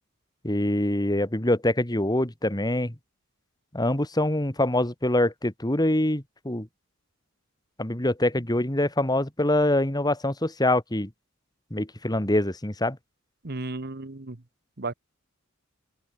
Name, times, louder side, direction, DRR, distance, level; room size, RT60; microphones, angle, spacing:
voice 1, 0.4-2.9 3.7-6.7 7.8-11.1 11.7-13.0, left 1 dB, 20° left, 2.4 m, -24 dB
voice 2, 13.4-14.4 14.8-14.9, right 2 dB, 50° right, 1.3 m, -33 dB
open air
head